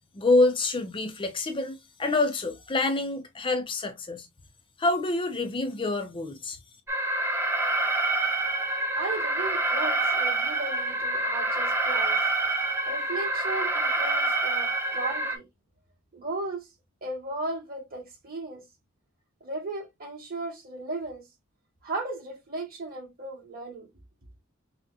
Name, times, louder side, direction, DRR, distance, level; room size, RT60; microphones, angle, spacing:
voice 1, 0.1-4.3 4.8-6.6, left 2 dB, 25° left, 0.5 m, -26 dB
Alarm, 6.9-15.4, right 2 dB, 10° right, 0.7 m, -27 dB
voice 2, 8.9-12.2 12.9-15.4 16.1-16.7 17.0-18.6 19.4-21.2 21.8-23.9, right 2 dB, 45° right, 2.3 m, -36 dB
5.8 x 2.1 x 2.7 m
head